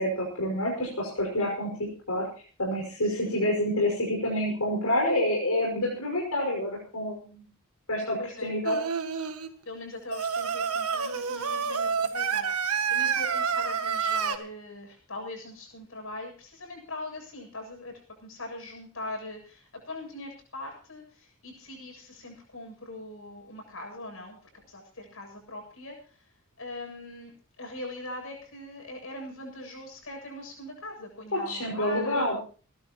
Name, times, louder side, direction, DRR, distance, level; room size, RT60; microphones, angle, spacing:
voice 1, 0.0-2.3 2.6-7.4 7.9-8.8 31.3-32.4, left 1 dB, 85° left, -2 dB, 5.8 m, -28 dB
voice 2, 3.0-3.4 8.2-8.6 9.6-32.3, left 2 dB, 65° left, 2 dB, 7.7 m, -41 dB
Singing, 8.6-9.5 10.1-14.4, right 6 dB, 85° right, 1.6 m, -28 dB
28.5 x 12.0 x 3.0 m, 0.39 s
head